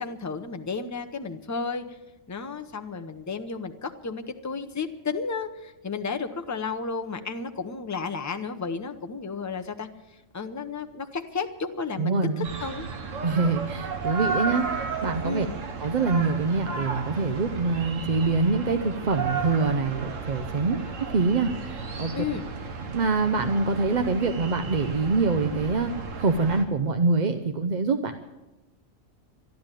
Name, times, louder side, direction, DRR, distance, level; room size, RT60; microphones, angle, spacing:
voice 1, 0.0-2.0 2.3-12.9 15.2-15.5 22.1-22.4, left 5 dB, 15° left, 7 dB, 0.7 m, -33 dB
voice 2, 12.0-12.5 13.2-15.5 15.8-20.8 21.1-22.1 22.9-25.9 26.2-28.2, right 4 dB, 45° right, 7 dB, 0.7 m, -25 dB
sound 1, 12.4-26.6, right 4 dB, 75° right, 1.6 m, -33 dB
12.5 x 12.0 x 9.0 m, 1.0 s
omnidirectional pair, 1.3 m